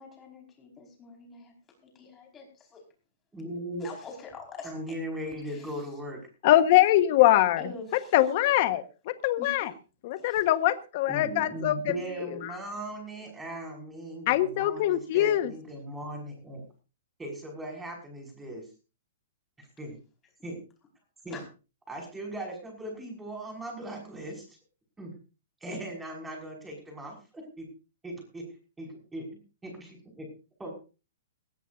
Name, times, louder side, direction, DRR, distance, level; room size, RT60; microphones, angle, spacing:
voice 1, 0.0-1.5 1.9-2.8 3.8-4.7 5.4-5.7 7.6-8.1 9.4-9.7 10.3-10.4 21.3-21.4, left 4 dB, 15° left, 2 dB, 5.1 m, -44 dB
voice 2, 3.3-3.9 4.6-6.2 11.1-16.6 17.2-18.7 19.6-20.0 20.4-20.6 21.2-21.4 21.9-24.5 25.0-25.1 25.6-27.7 28.0-28.4 28.8-29.3 29.6-30.3 30.6-30.7, right 1 dB, 5° right, 1 dB, 5.8 m, -38 dB
voice 3, 6.4-7.7 8.1-9.7 10.0-12.6 14.3-15.5, left 14 dB, 35° left, 11 dB, 1.3 m, -23 dB
20.5 x 16.0 x 2.7 m, 0.33 s
hypercardioid pair, 170°, 0 cm